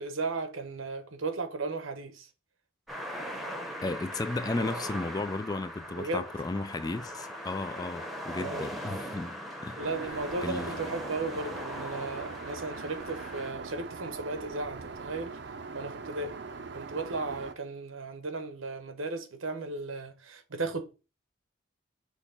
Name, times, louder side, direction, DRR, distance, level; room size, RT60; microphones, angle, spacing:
voice 1, 0.0-2.3 4.6-4.7 6.0-6.2 8.4-8.7 9.8-15.4 15.7-16.4 16.7-20.9, right 3 dB, 85° right, 1.0 m, -35 dB
sound 1, 2.9-13.5, equal, ahead, 0.9 m, -40 dB
voice 2, 3.8-9.3 9.6-9.8 10.4-10.7, left 2 dB, 20° left, 0.3 m, -34 dB
Aircraft, 9.8-17.5, right 4 dB, 55° right, 0.6 m, -41 dB
6.3 x 2.9 x 5.6 m
head